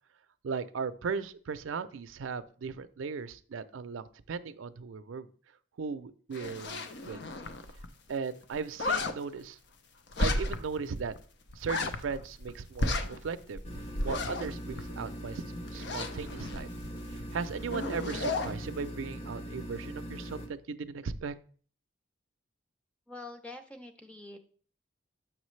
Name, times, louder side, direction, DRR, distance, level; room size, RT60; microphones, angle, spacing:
voice 1, 0.4-5.3 5.8-7.2 8.1-9.6 10.2-11.1 11.6-13.6 14.0-16.7 17.1-21.3, right 5 dB, 90° right, 11 dB, 0.5 m, -37 dB
sound 1, 6.3-8.1 8.4-9.1 10.1-10.8 11.1-11.2 11.5-12.5 12.8-15.3 15.7-17.2 17.5-18.6, left 2 dB, 60° left, 0.6 m, -33 dB
sound 2, 13.6-20.5, equal, 30° left, 0.9 m, -41 dB
voice 2, 23.1-24.4, left 2 dB, 5° left, 5 dB, 0.6 m, -45 dB
7.2 x 6.0 x 3.2 m, 0.44 s
head